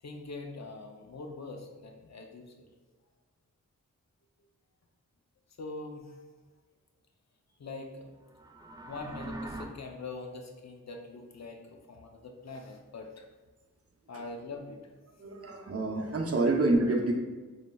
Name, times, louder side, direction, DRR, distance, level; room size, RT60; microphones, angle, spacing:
voice 1, 0.0-2.5 5.6-6.2 7.6-8.1 8.9-13.3 14.1-14.8 16.5-16.6, left 3 dB, 60° left, 3 dB, 0.6 m, -43 dB
sound 1, 8.3-9.7, right 2 dB, 15° right, 0.4 m, -42 dB
voice 2, 15.2-17.1, right 2 dB, 50° right, 2 dB, 0.7 m, -27 dB
5.0 x 3.2 x 2.3 m, 1.3 s
cardioid pair, 50°, 31 cm